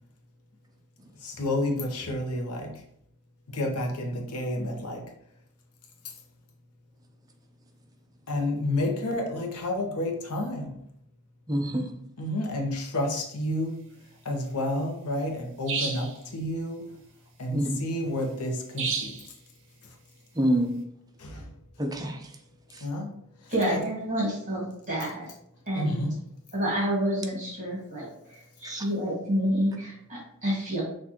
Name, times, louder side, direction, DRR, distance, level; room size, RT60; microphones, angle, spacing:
voice 1, 1.2-2.8 3.5-5.1 6.0-6.1 8.3-10.9 12.2-13.8 14.2-17.0 17.4-19.3 19.8-20.0 21.2-21.5 22.8-23.8 25.7-26.2, left 1 dB, 80° left, 2 dB, 0.8 m, -30 dB
voice 2, 11.5-12.0 17.5-17.7 20.4-20.8 21.8-22.3 22.7-22.8 28.6-28.8, right 1 dB, 15° right, 3 dB, 0.6 m, -27 dB
sound 1, 15.7-16.2 18.8-19.3, right 5 dB, 60° right, 0.7 m, -30 dB
voice 3, 23.5-25.3 25.7-26.0 26.5-28.3 28.6-30.8, equal, 35° right, -5 dB, 1.7 m, -28 dB
6.1 x 2.5 x 2.9 m, 0.71 s
head